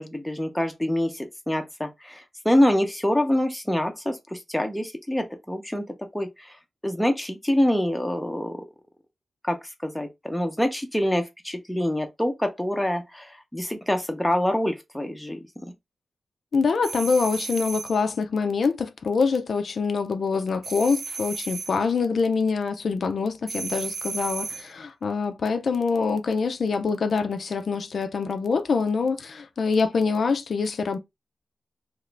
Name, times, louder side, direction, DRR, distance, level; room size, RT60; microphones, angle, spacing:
voice 1, 0.0-6.5 6.8-8.6 9.5-15.7, left 1 dB, 5° left, 0.6 m, -26 dB
voice 2, 16.5-31.0, left 5 dB, 60° left, 0.4 m, -25 dB
sound 1, 16.8-18.0 20.6-21.8 23.5-24.7, right 4 dB, 60° right, 0.3 m, -34 dB
2.9 x 2.5 x 3.2 m
wide cardioid pair, 150°, 0 cm